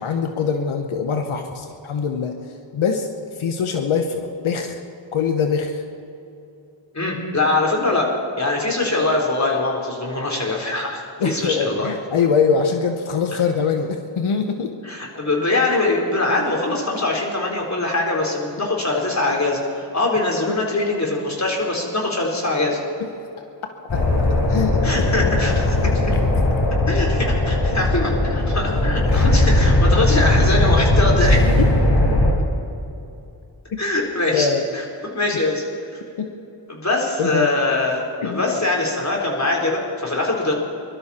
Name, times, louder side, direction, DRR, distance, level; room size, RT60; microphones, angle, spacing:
voice 1, 0.0-2.3 2.7-4.8 5.1-5.8 11.2-14.7 20.5-20.6 23.0-23.1 23.9-24.0 24.5-24.8 26.1-26.2 31.5-31.7 34.3-34.7 36.2-36.3 37.2-37.5 38.2-38.6, left 6 dB, 85° left, 5 dB, 1.1 m, -23 dB
voice 2, 6.9-11.9 14.8-22.8 24.8-25.9 26.9-31.4 33.8-34.8 35.1-35.6 35.9-36.0 36.7-40.5, left 2 dB, 35° left, -1 dB, 4.2 m, -22 dB
sound 1, 23.9-32.3, left 1 dB, 55° left, 4.6 m, -18 dB
22.5 x 12.5 x 4.3 m, 2.8 s
cardioid pair, 55°, 48 cm